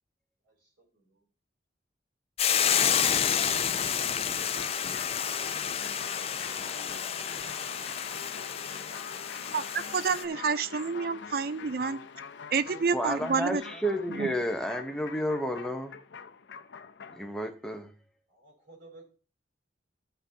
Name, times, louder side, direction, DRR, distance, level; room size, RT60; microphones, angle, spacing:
voice 1, 0.4-1.3 12.7-12.8 13.1-14.1 18.3-19.0, right 1 dB, 85° right, 4.4 m, -54 dB
Hiss / Boiling, 2.4-10.2, left 8 dB, 35° left, 0.4 m, -29 dB
sound 1, 3.8-17.3, left 5 dB, 85° left, 0.6 m, -44 dB
voice 2, 9.5-12.0 12.5-13.6 14.1-14.3, right 5 dB, 55° right, 0.4 m, -29 dB
voice 3, 12.9-15.9 17.1-17.9, equal, 5° left, 0.8 m, -31 dB
13.5 x 5.8 x 2.8 m
head